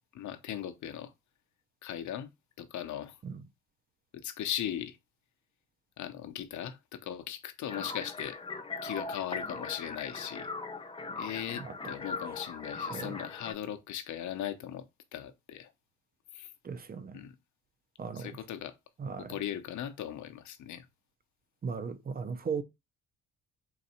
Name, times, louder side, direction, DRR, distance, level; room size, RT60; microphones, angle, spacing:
voice 1, 0.1-1.1 1.8-2.3 2.6-3.2 4.1-5.0 6.0-8.4 8.8-10.5 11.2-14.8 15.1-15.7 16.3-16.5 17.1-17.3 18.1-18.7 19.2-20.9, left 10 dB, 70° left, 0.7 m, -38 dB
sound 1, 7.7-13.5, left 4 dB, 20° left, 0.7 m, -39 dB
voice 2, 11.6-11.9 12.9-13.2 16.6-17.2 18.0-18.3 19.0-19.3 21.6-22.6, right 5 dB, 30° right, 0.6 m, -37 dB
4.0 x 2.6 x 4.2 m
cardioid pair, 90°, 30 cm